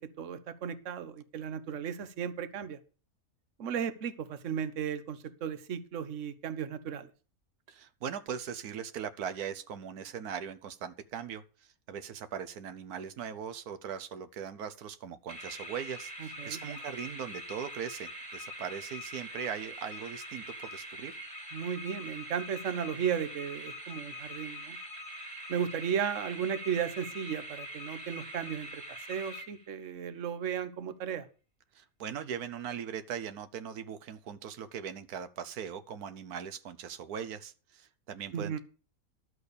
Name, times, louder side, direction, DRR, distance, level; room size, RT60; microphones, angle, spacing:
voice 1, 0.0-2.8 3.6-7.1 16.2-16.6 21.5-24.8 25.5-31.3 38.3-38.6, right 8 dB, 60° right, 13 dB, 1.3 m, -35 dB
voice 2, 7.7-20.4 20.7-21.2 31.7-38.6, right 8 dB, 85° right, 10 dB, 1.4 m, -40 dB
sound 1, 15.3-29.9, equal, 20° right, 2.4 m, -43 dB
12.0 x 6.4 x 6.7 m, 0.37 s
omnidirectional pair, 1.6 m